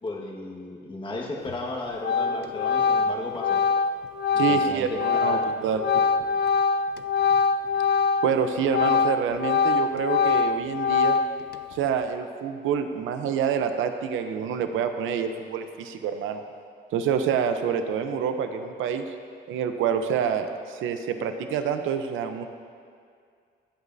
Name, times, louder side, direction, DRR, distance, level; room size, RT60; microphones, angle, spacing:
voice 1, 0.0-3.6 4.3-5.5, left 2 dB, 25° left, -2 dB, 1.6 m, -34 dB
Organ, 1.5-1.7 2.0-8.4 8.7-11.6, left 5 dB, 55° left, 0.5 m, -23 dB
voice 2, 4.4-6.0 8.2-11.2 11.7-16.4 16.9-19.0 19.5-22.5, right 7 dB, 85° right, 7 dB, 0.8 m, -27 dB
24.5 x 8.3 x 2.7 m, 2.2 s
cardioid pair, 90°, 20 cm